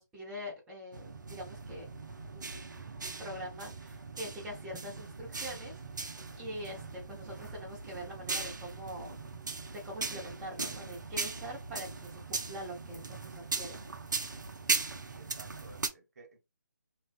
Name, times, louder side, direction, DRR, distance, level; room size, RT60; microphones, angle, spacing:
voice 1, 0.0-1.9 2.3-2.9 3.2-5.8 6.4-9.2 9.7-13.8, equal, 5° right, 0.6 m, -44 dB
sound 1, 0.9-15.9, right 4 dB, 70° right, 0.5 m, -39 dB
voice 2, 15.0-16.4, right 3 dB, 55° right, 0.9 m, -55 dB
2.3 x 2.2 x 2.4 m
figure-of-eight pair, 150°, 10 cm